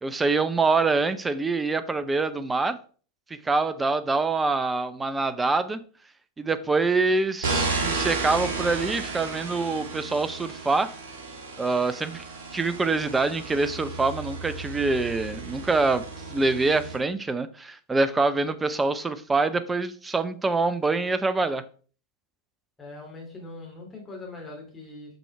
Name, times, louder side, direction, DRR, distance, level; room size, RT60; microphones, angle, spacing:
voice 1, 0.0-2.8 3.4-5.8 6.4-10.9 11.6-12.2 12.5-16.0 16.3-21.6, right 3 dB, 10° right, 0.7 m, -25 dB
sound 1, 7.4-17.0, right 4 dB, 55° right, 1.9 m, -33 dB
voice 2, 22.8-25.2, left 2 dB, 15° left, 2.8 m, -41 dB
7.7 x 6.1 x 3.5 m
figure-of-eight pair, 90°, 0 cm